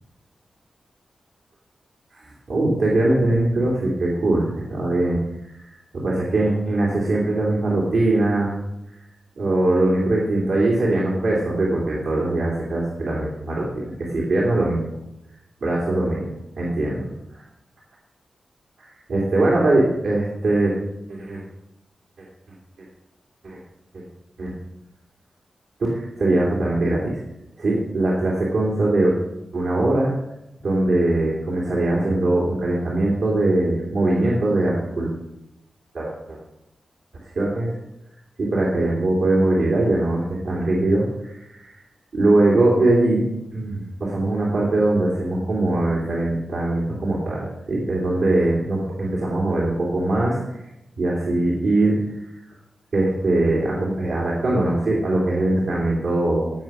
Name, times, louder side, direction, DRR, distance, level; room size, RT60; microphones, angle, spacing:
voice 1, 2.1-8.5 9.4-14.8 15.6-16.3 16.6-17.1 18.8-20.7 21.1-21.4 23.4-23.6 24.4-24.5 25.8-27.2 27.6-29.2 29.5-30.1 30.6-35.1 35.9-36.4 37.3-37.7 38.4-41.8 42.1-43.2 43.5-50.6 51.0-52.2 52.9-56.5, right 2 dB, 80° right, -5 dB, 2.6 m, -21 dB
15.0 x 5.4 x 6.0 m, 0.88 s
wide cardioid pair, 80°, 0 cm